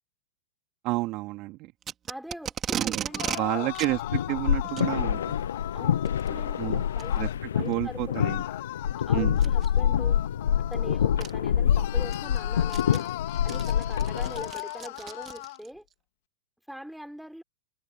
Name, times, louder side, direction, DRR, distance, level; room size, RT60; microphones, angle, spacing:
voice 1, 0.8-1.7 2.7-3.0 3.3-5.3 6.6-6.8 7.1-7.3 7.6-8.4 9.1-9.4, right 20 dB, 45° right, 3.4 m, -30 dB
Packing tape duct tape, 1.8-3.4 3.8-3.9 4.6-4.9 6.1-6.3 7.0-7.1 7.7-7.8 9.4-9.7 10.7-10.8 11.2-11.3 11.8-15.7, right 9 dB, 25° right, 2.9 m, -35 dB
voice 2, 2.1-3.7 5.7-7.2 7.5-8.4 9.1-10.2 10.7-13.1 13.4-15.8 16.7-17.4, equal, ahead, 5.3 m, -42 dB
sound 1, 3.1-7.4 8.1-11.3 11.7-15.6, left 20 dB, 55° left, 2.8 m, -38 dB
sound 2, 3.7-14.5, left 9 dB, 75° left, 0.5 m, -26 dB
hypercardioid pair, 105°, 0 cm